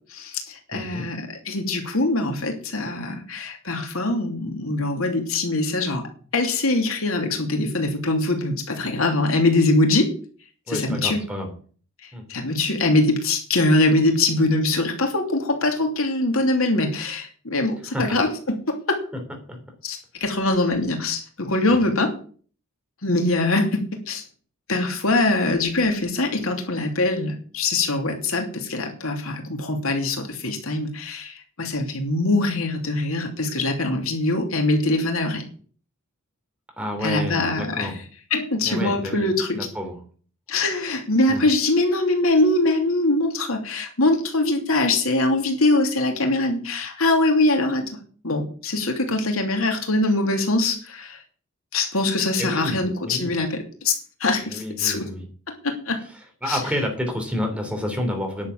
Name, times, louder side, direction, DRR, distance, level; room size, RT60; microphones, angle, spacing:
voice 1, 0.1-6.1 6.3-10.1 10.7-11.2 12.3-19.0 19.8-22.1 23.0-24.2 24.7-35.4 37.0-37.9 38.3-39.7 40.5-48.0 48.2-51.2 51.7-53.9 54.2-55.1 55.6-56.0 56.5-56.6, left 2 dB, 85° left, 3 dB, 2.9 m, -23 dB
voice 2, 0.7-1.1 10.7-11.5 12.1-12.3 17.8-18.2 19.5-19.6 21.7-21.8 36.8-38.0 38.6-39.3 39.6-40.0 41.3-41.4 52.4-53.3 54.4-55.3 56.4-58.5, left 1 dB, 5° right, 3 dB, 3.5 m, -29 dB
10.5 x 7.1 x 8.5 m, 0.43 s
head